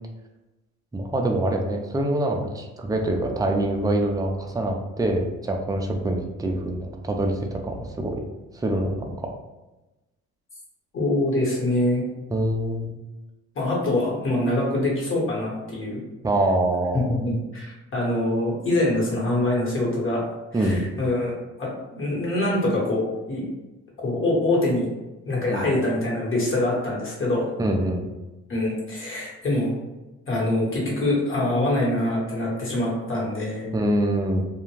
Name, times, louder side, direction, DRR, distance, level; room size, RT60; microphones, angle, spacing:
voice 1, 0.9-8.2 8.5-9.3 12.3-12.9 16.2-17.1 20.5-20.9 25.5-25.7 27.6-28.0 33.7-34.4, right 1 dB, 10° right, 2 dB, 0.4 m, -25 dB
voice 2, 10.9-12.0 13.5-16.0 16.9-20.2 20.6-23.4 24.0-24.9 25.2-27.5 28.5-29.7 30.3-33.7, left 1 dB, 45° left, -4 dB, 1.3 m, -24 dB
2.4 x 2.2 x 3.1 m, 1.1 s
cardioid pair, 90°, 30 cm